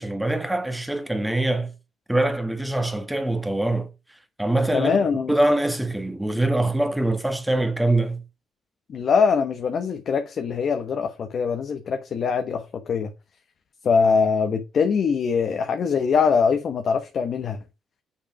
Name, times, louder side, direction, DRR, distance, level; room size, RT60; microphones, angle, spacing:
voice 1, 0.0-1.7 2.1-3.9 4.4-5.0 5.3-8.2, right 1 dB, 5° right, 1.4 m, -23 dB
voice 2, 4.7-5.3 8.9-13.1 13.8-17.6, left 5 dB, 55° left, 1.2 m, -22 dB
6.6 x 6.1 x 4.8 m
cardioid pair, 90°, 0 cm